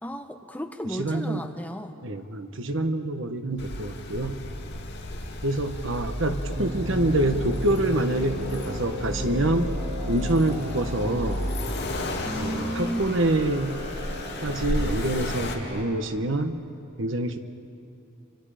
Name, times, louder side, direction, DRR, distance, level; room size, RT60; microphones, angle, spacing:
voice 1, 0.0-2.0 12.2-13.2, equal, 10° left, 5 dB, 1.1 m, -33 dB
voice 2, 1.0-1.5 2.0-4.4 5.4-9.8 10.1-11.5 12.4-13.8 14.4-16.6 17.0-17.4, right 1 dB, 65° right, 8 dB, 1.3 m, -26 dB
Accelerating revving vroom, 3.6-15.5, left 1 dB, 55° left, 2.4 m, -33 dB
sound 1, 6.5-15.8, equal, 45° right, 7.5 m, -35 dB
29.5 x 25.5 x 5.1 m, 2.7 s
head